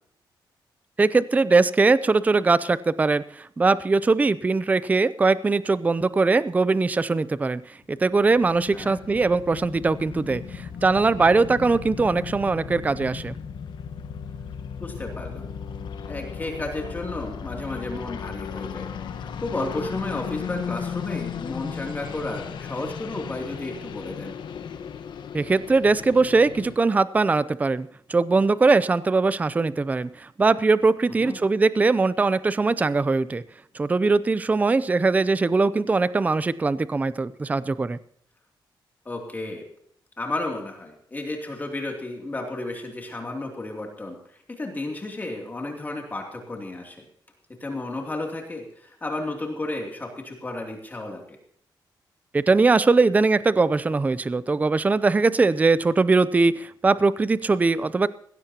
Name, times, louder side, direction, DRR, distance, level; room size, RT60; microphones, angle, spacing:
voice 1, 1.0-13.3 25.3-33.4 33.7-38.0 52.3-58.1, right 3 dB, 20° right, 16 dB, 0.5 m, -21 dB
sound 1, 7.9-26.8, left 7 dB, 75° left, 1.2 m, -36 dB
voice 2, 14.8-15.5 16.1-24.4 31.2-31.4 39.0-39.6 40.2-47.0 47.6-51.4, left 2 dB, 20° left, 1 dB, 2.7 m, -33 dB
19.0 x 16.5 x 2.9 m, 0.65 s
wide cardioid pair, 145°, 8 cm